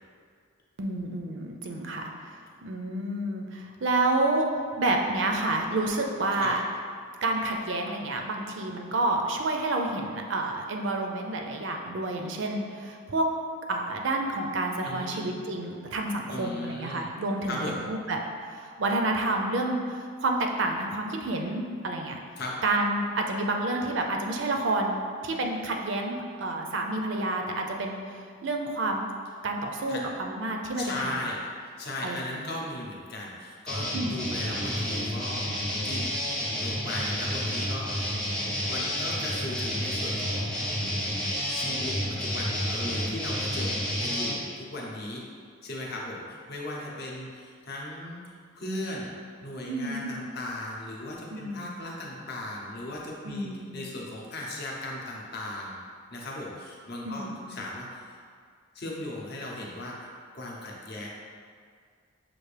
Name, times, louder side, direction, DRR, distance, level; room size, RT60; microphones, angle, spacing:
voice 1, 0.8-2.1 2.6-6.6 7.2-13.3 13.7-22.2 22.6-29.1 29.4-31.1 32.0-32.6 33.9-34.1 49.7-50.1 51.3-51.7 53.2-53.7 57.0-57.5, right 2 dB, 60° right, 2 dB, 0.4 m, -29 dB
voice 2, 14.8-15.4 16.3-17.1 17.5-17.8 22.4-22.5 29.9-30.1 30.8-35.5 35.8-38.2 38.7-40.8 41.5-41.9 42.2-45.2 45.6-49.1 49.4-53.5 53.7-55.8 56.1-58.2 58.7-60.1 60.3-61.1, left 1 dB, 50° left, -3 dB, 0.7 m, -37 dB
sound 1, 33.7-44.3, equal, 5° left, 0.6 m, -30 dB
5.8 x 2.5 x 3.2 m, 2.1 s
head